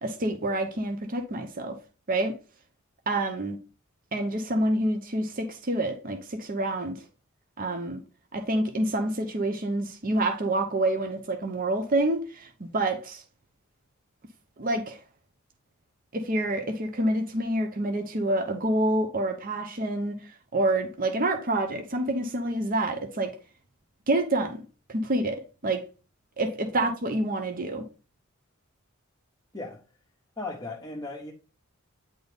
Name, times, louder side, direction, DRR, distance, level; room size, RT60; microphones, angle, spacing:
voice 1, 0.0-1.8 2.1-2.4 3.1-3.6 4.1-7.0 7.6-8.0 8.3-13.2 14.6-15.0 16.1-23.4 24.1-24.6 24.9-25.8 26.4-27.8, right 1 dB, 40° right, 0.7 m, -27 dB
voice 2, 29.5-29.8 30.4-31.3, left 2 dB, 15° left, 1.0 m, -37 dB
9.3 x 4.0 x 3.5 m
head